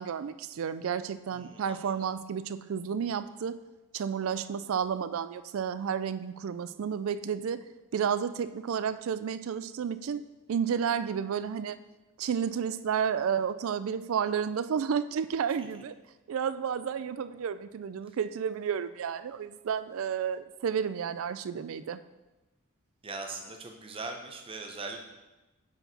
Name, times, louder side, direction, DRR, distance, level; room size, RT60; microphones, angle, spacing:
voice 1, 0.0-3.6 3.9-7.7 7.9-11.8 12.2-15.9 16.3-22.0, right 7 dB, 65° right, 13 dB, 0.3 m, -31 dB
voice 2, 1.3-2.1 15.7-15.8 18.0-18.2 23.0-25.0, right 3 dB, 25° right, 3 dB, 0.7 m, -41 dB
7.8 x 4.6 x 4.1 m, 1.1 s
head